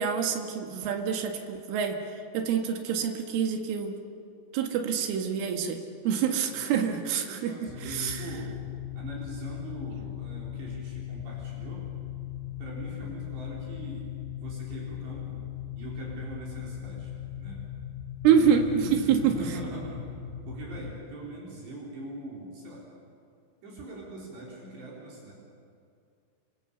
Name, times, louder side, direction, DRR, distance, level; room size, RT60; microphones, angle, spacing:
voice 1, 0.0-2.0 2.3-3.9 4.5-5.8 6.1-7.5 7.9-8.2 18.2-19.3, right 7 dB, 85° right, 4 dB, 4.3 m, -26 dB
voice 2, 6.5-8.5 9.0-11.9 12.6-14.1 14.4-15.5 15.8-17.1 17.4-17.6 18.3-20.1 20.5-22.9 23.6-25.3, right 2 dB, 65° right, -4 dB, 6.0 m, -42 dB
sound 1, 7.7-21.0, left 11 dB, 70° left, 6.9 m, -39 dB
30.0 x 25.5 x 6.9 m, 2.4 s
omnidirectional pair, 5.5 m